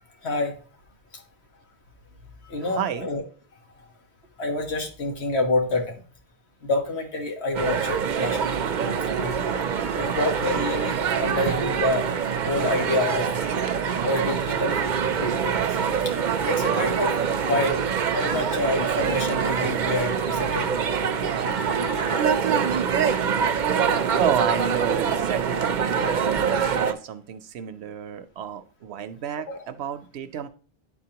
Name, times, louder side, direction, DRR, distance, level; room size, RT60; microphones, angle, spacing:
voice 1, 0.2-0.5 2.5-3.2 4.4-6.0 6.6-8.6 9.2-9.3 10.0-12.1 12.4-13.3 14.0-14.9 15.2-15.8 16.0-16.1 16.4-17.1 17.4-17.8 18.1-20.7 21.9-22.0 29.5-29.6, left 2 dB, 85° left, 2 dB, 1.6 m, -27 dB
voice 2, 2.6-3.1 24.2-30.5, right 8 dB, 85° right, 11 dB, 0.9 m, -31 dB
sound 1, 7.5-26.9, right 7 dB, 55° right, 0.7 m, -25 dB
10.5 x 4.1 x 2.9 m, 0.39 s
omnidirectional pair, 1.1 m